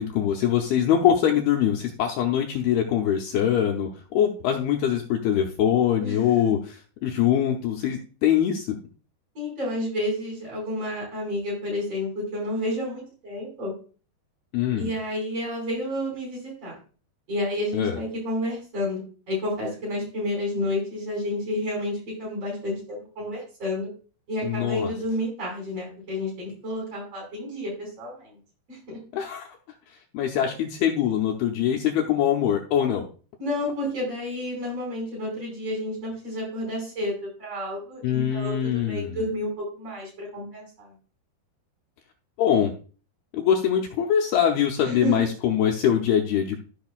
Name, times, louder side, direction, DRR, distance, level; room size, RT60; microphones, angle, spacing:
voice 1, 0.0-6.6 7.0-8.8 14.5-14.9 17.7-18.0 24.4-24.9 29.1-29.5 30.1-33.1 38.0-39.2 42.4-42.7 43.3-46.6, left 9 dB, 75° left, 1 dB, 2.5 m, -23 dB
voice 2, 6.0-6.5 9.3-13.8 14.8-16.8 17.3-19.0 19.3-23.9 24.3-28.4 28.7-29.0 33.4-40.9 44.8-45.3, left 1 dB, 35° right, -3 dB, 6.1 m, -30 dB
14.0 x 6.4 x 2.4 m, 0.38 s
omnidirectional pair, 5.0 m